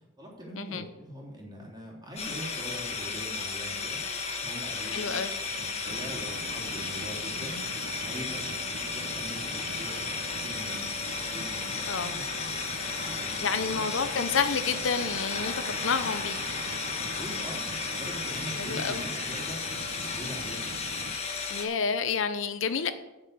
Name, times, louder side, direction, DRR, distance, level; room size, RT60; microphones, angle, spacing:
voice 1, 0.2-4.0 4.4-5.2 5.4-8.6 8.9-10.0 10.4-10.9 11.3-12.5 12.8-13.9 16.9-20.7, equal, 20° right, -3 dB, 3.2 m, -43 dB
sound 1, 2.2-21.6, left 4 dB, 35° left, 1.5 m, -34 dB
voice 2, 4.8-5.3 11.8-12.1 13.4-15.5 15.8-16.4 18.6-19.0 21.5-22.9, left 5 dB, 75° left, 10 dB, 0.7 m, -29 dB
sound 2, 5.9-21.2, right 3 dB, 65° right, 0.7 m, -43 dB
8.1 x 6.9 x 8.2 m, 0.99 s
head